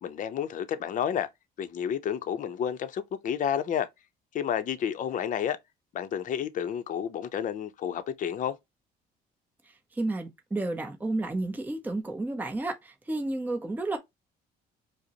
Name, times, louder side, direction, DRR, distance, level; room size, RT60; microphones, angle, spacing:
voice 1, 0.0-1.3 1.6-3.9 4.3-5.6 5.9-8.6, left 9 dB, 50° left, 0.6 m, -30 dB
voice 2, 9.6-14.0, right 2 dB, 10° right, 0.7 m, -32 dB
4.9 x 2.1 x 2.8 m
cardioid pair, 110°, 17 cm